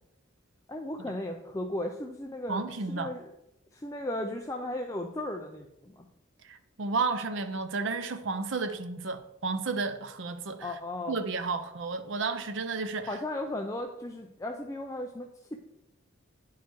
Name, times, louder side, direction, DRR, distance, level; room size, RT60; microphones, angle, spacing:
voice 1, 0.7-3.3 3.7-6.1 10.6-11.2 13.1-15.6, left 1 dB, 15° left, 0.4 m, -36 dB
voice 2, 2.5-3.1 6.4-10.7 11.1-13.1, right 4 dB, 65° right, 0.6 m, -32 dB
9.3 x 4.7 x 4.6 m
head